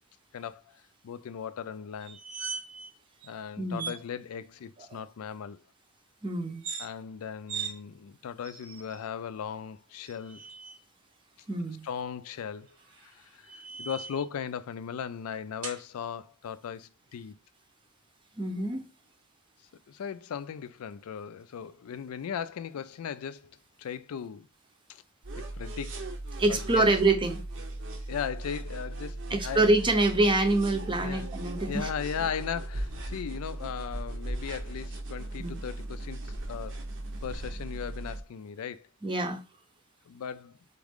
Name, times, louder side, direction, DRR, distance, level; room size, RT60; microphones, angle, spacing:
voice 1, 0.3-2.2 3.2-5.6 6.8-10.4 11.8-12.7 13.0-17.4 19.9-24.5 24.9-25.0 25.5-26.1 26.5-26.9 28.1-29.7 31.0-31.3 31.7-36.8 37.2-38.9 40.1-40.6, left 7 dB, 80° left, 0.4 m, -37 dB
sound 1, 2.0-2.9 3.2-3.3 3.7-4.0 6.5-6.9 7.5-7.7 8.4-9.0 10.0-10.8 12.7-14.3 15.6-15.8, right 5 dB, 75° right, 1.2 m, -40 dB
voice 2, 3.6-3.9 4.9-5.0 6.2-6.6 11.5-11.8 18.4-18.9 26.4-27.4 29.3-31.9 35.4-35.6 39.0-39.4, right 2 dB, 25° right, 0.6 m, -26 dB
sound 2, 25.2-38.2, right 1 dB, 60° right, 0.7 m, -37 dB
4.1 x 3.6 x 3.5 m
head